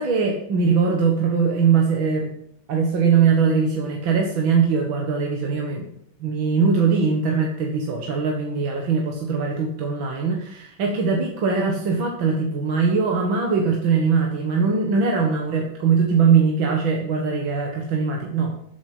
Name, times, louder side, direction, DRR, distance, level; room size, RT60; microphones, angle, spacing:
voice 1, 0.0-2.4 2.7-5.9 6.2-18.5, right 5 dB, 75° right, 0 dB, 2.4 m, -21 dB
13.5 x 8.3 x 6.0 m, 0.71 s
omnidirectional pair, 2.2 m